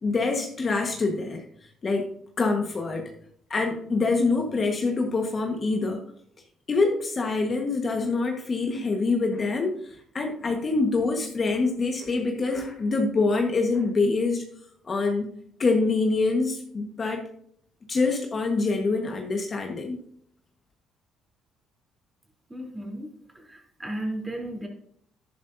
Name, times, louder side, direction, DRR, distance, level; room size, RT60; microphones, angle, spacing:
voice 1, 0.0-1.4 1.8-2.1 2.4-3.1 3.5-6.0 6.7-14.4 14.8-15.3 15.6-17.3 17.9-20.0, left 3 dB, 35° left, 2 dB, 1.3 m, -25 dB
voice 2, 22.5-23.1 23.3-24.7, right 1 dB, 15° right, 1 dB, 3.3 m, -34 dB
11.0 x 10.5 x 2.7 m, 0.67 s
cardioid pair, 100°, 0 cm